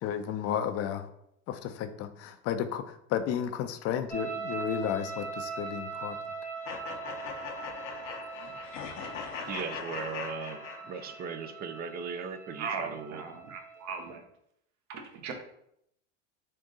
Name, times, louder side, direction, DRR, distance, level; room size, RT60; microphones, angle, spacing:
voice 1, 0.0-1.1 1.5-6.2, left 9 dB, 40° left, 9 dB, 0.5 m, -33 dB
sound 1, 4.1-14.1, right 5 dB, 5° left, 0.9 m, -41 dB
sound 2, 6.6-11.3, left 5 dB, 80° left, 0.8 m, -40 dB
voice 2, 9.5-13.2, right 5 dB, 25° right, 9 dB, 0.4 m, -38 dB
voice 3, 12.6-14.3 14.9-15.3, right 5 dB, 50° right, 4 dB, 0.9 m, -38 dB
3.7 x 2.6 x 3.8 m, 0.74 s
hypercardioid pair, 90°, 37 cm